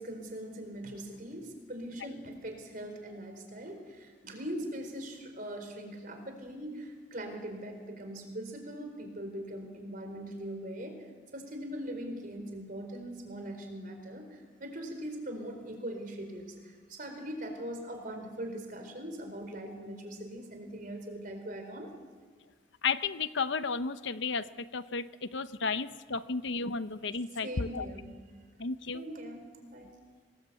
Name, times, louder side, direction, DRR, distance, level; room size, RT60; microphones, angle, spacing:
voice 1, 0.0-10.9 11.3-21.9 27.4-28.1 28.9-29.4 29.7-29.9, right 1 dB, 45° right, 5 dB, 4.4 m, -41 dB
voice 2, 22.8-27.9 28.6-29.0, left 4 dB, 65° left, 13 dB, 0.8 m, -33 dB
25.5 x 19.5 x 8.4 m, 1.5 s
head